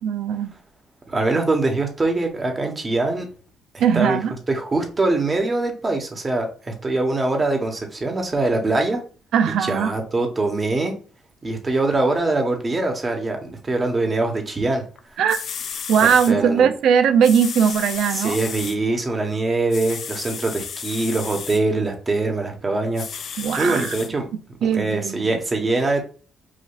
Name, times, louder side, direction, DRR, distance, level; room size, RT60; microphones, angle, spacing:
voice 1, 0.0-0.5 3.8-4.3 9.3-9.9 15.2-15.4 15.9-18.4 23.4-23.9 24.6-25.4, right 7 dB, 80° right, 0.5 m, -19 dB
voice 2, 1.1-3.3 3.7-4.2 4.5-9.0 9.6-10.9 11.4-14.8 16.0-16.7 18.1-23.0 23.3-24.3 24.6-26.0, right 2 dB, 30° right, 1.3 m, -23 dB
sound 1, 15.0-15.1 15.3-16.3 17.2-18.8 19.7-21.6 22.9-24.1 24.7-24.8, left 7 dB, 60° left, 0.5 m, -32 dB
5.0 x 2.6 x 2.4 m
cardioid pair, 90°, 0 cm